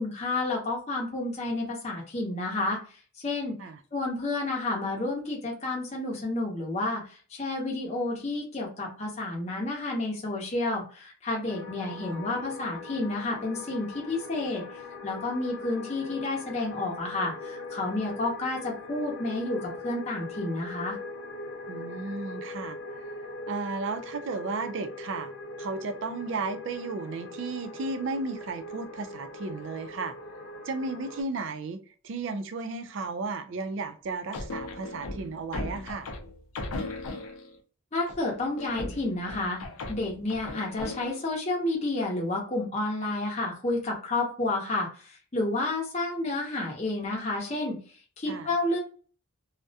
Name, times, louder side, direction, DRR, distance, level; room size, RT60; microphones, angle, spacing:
voice 1, 0.0-2.8 3.2-3.6 3.9-14.6 15.0-21.0 37.9-39.6 39.9-47.8 48.2-48.8, left 2 dB, 30° left, 0.6 m, -30 dB
sound 1, 11.5-31.2, left 2 dB, 65° left, 0.9 m, -41 dB
voice 2, 11.8-12.3 21.7-23.1 23.5-25.3 25.6-30.2 30.6-31.8 32.0-36.1 48.3-48.5, right 3 dB, 60° right, 0.3 m, -34 dB
sound 2, 34.3-37.6 38.1-41.3, left 2 dB, 80° left, 0.5 m, -37 dB
2.3 x 2.0 x 2.6 m
head